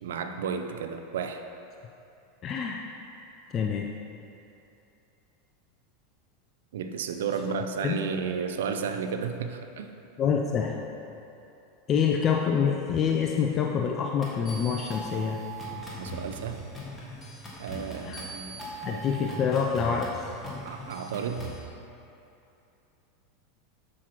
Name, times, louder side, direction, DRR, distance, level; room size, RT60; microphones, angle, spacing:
voice 1, 0.0-1.4 6.7-9.9 16.0-16.6 17.6-18.6 18.9-19.0 20.6-21.6, right 6 dB, 85° right, 7 dB, 0.4 m, -33 dB
voice 2, 2.4-2.8 3.5-3.9 7.8-8.0 10.2-10.8 11.9-15.4 18.0-18.2 18.8-20.2, left 7 dB, 35° left, 1 dB, 0.4 m, -26 dB
sound 1, 14.2-21.6, right 1 dB, 15° left, 1.6 m, -40 dB
7.3 x 6.3 x 2.9 m, 2.8 s
hypercardioid pair, 110°, 0 cm